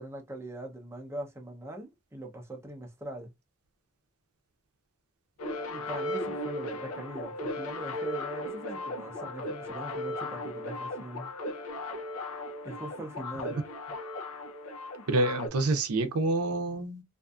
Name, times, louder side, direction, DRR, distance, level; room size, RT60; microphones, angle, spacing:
voice 1, 0.0-3.3 5.7-11.3 12.6-13.7, right 1 dB, 10° right, 0.6 m, -41 dB
sound 1, 5.4-15.5, left 1 dB, 70° left, 0.6 m, -36 dB
voice 2, 15.1-17.0, right 2 dB, 80° right, 0.6 m, -27 dB
2.5 x 2.4 x 2.3 m
head